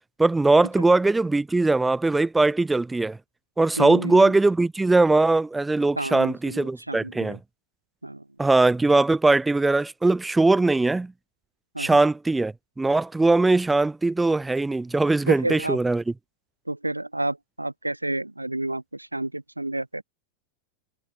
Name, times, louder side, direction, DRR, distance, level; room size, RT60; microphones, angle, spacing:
voice 1, 0.2-3.2 3.6-7.4 8.4-11.1 11.8-16.0, right 2 dB, 10° right, 1.9 m, -20 dB
voice 2, 3.8-4.3 6.0-7.4 8.0-8.2 11.7-12.0 15.3-15.8 16.7-20.0, right 2 dB, 85° right, 2.5 m, -30 dB
figure-of-eight pair, 90°, 0 cm